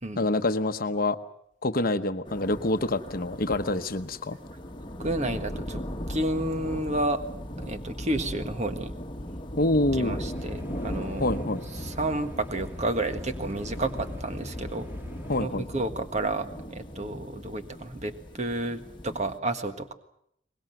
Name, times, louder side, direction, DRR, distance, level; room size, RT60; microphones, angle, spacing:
voice 1, 0.2-1.2 1.6-4.4 9.6-10.2 11.2-11.6 15.3-15.7, left 2 dB, 50° left, 9 dB, 1.0 m, -26 dB
sound 1, 2.2-19.4, equal, 25° left, 1.6 m, -38 dB
voice 2, 5.0-5.8 6.1-7.2 7.6-8.9 9.9-11.4 11.8-14.9 15.4-19.9, right 1 dB, 35° right, 8 dB, 1.6 m, -31 dB
sound 2, 10.3-15.4, left 1 dB, 10° right, 1.8 m, -42 dB
23.5 x 21.0 x 7.9 m, 0.73 s
head